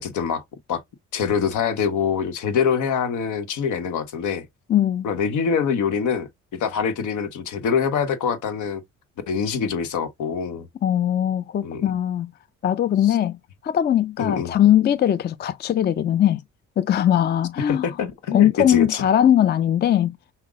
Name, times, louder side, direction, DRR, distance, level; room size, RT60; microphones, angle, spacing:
voice 1, 0.0-0.4 0.7-0.8 1.1-4.5 5.0-8.8 9.3-10.7 11.6-11.9 13.0-13.2 14.2-14.6 17.6-19.0, left 6 dB, 80° left, 1.1 m, -24 dB
voice 2, 4.7-5.0 10.8-12.3 12.6-13.4 13.6-16.4 16.8-17.8 18.3-20.1, left 11 dB, 35° left, 0.4 m, -20 dB
5.8 x 2.1 x 3.6 m
cardioid pair, 90°, 30 cm